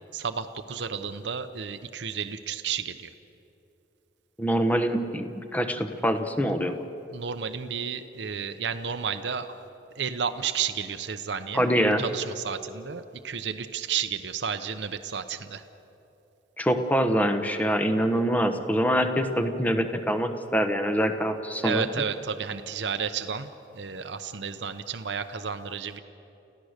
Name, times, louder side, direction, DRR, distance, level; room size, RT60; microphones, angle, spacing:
voice 1, 0.1-3.1 7.1-9.7 9.9-11.7 12.0-15.6 21.6-26.0, right 6 dB, 70° right, 9 dB, 0.8 m, -32 dB
voice 2, 4.4-6.8 11.5-12.0 16.6-21.8, equal, 10° left, 7 dB, 1.0 m, -25 dB
29.5 x 15.0 x 6.6 m, 2.8 s
head